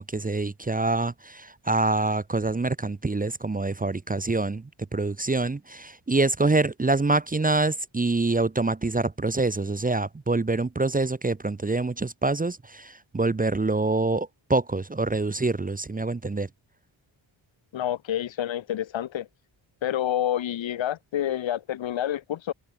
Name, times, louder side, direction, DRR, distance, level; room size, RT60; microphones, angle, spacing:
voice 1, 0.0-16.5, right 3 dB, 20° right, 0.9 m, -26 dB
voice 2, 17.7-19.3 19.8-22.5, left 11 dB, 70° left, 1.0 m, -28 dB
wide cardioid pair, 110°, 47 cm